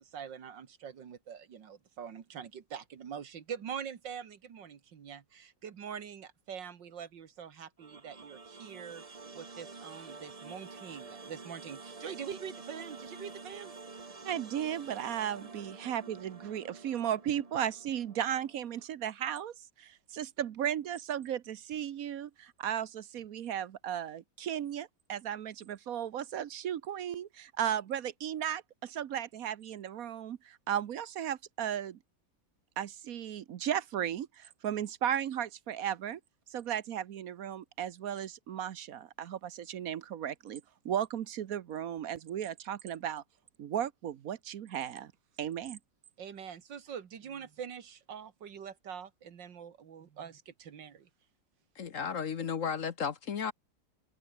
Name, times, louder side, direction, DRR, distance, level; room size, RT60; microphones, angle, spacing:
voice 1, 0.0-9.0 9.3-13.7 46.2-51.1, right 7 dB, 90° right, 2.3 m, -44 dB
sound 1, 7.8-18.8, right 4 dB, 25° right, 1.1 m, -49 dB
voice 2, 14.2-32.0 32.8-36.2 36.5-43.2 43.6-45.1 45.4-45.8, right 10 dB, 60° right, 1.1 m, -35 dB
voice 3, 51.7-53.5, left 7 dB, 50° left, 1.3 m, -34 dB
open air
omnidirectional pair, 1.9 m